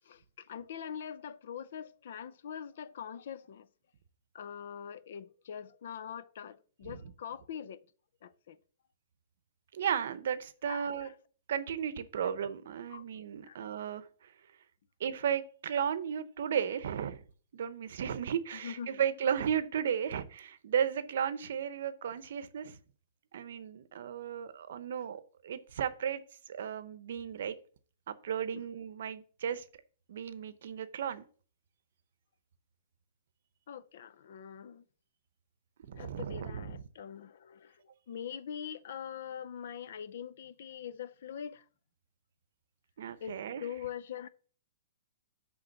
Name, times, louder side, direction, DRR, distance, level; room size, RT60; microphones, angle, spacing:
voice 1, 0.1-3.7 4.3-7.8 8.2-8.6 10.6-11.1 12.9-13.0 13.4-13.6 18.6-19.0 28.5-28.6 33.7-34.8 36.0-37.8 38.1-41.6 43.2-44.3, left 8 dB, 60° left, 0.5 m, -43 dB
voice 2, 9.7-11.1 11.5-14.1 15.0-17.2 17.5-22.8 23.3-26.2 26.5-27.6 28.1-29.6 30.1-31.2 35.9-36.8 43.0-43.6, right 8 dB, 65° right, 0.7 m, -34 dB
7.8 x 3.6 x 5.8 m
hypercardioid pair, 160°, 0 cm